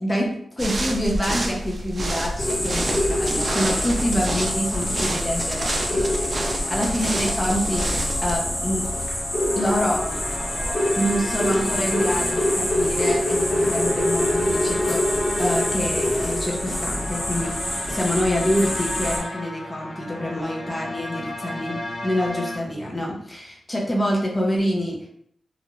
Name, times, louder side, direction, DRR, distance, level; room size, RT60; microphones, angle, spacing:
voice 1, 0.0-8.9 9.6-10.0 11.0-25.1, equal, 20° left, -2 dB, 0.6 m, -26 dB
sound 1, 0.6-8.4, right 1 dB, 45° right, 0.5 m, -28 dB
sound 2, 2.4-19.2, left 1 dB, 40° left, 1.1 m, -25 dB
sound 3, 9.1-22.6, left 1 dB, 70° left, 0.5 m, -34 dB
2.4 x 2.1 x 3.0 m, 0.67 s
cardioid pair, 60°, 0 cm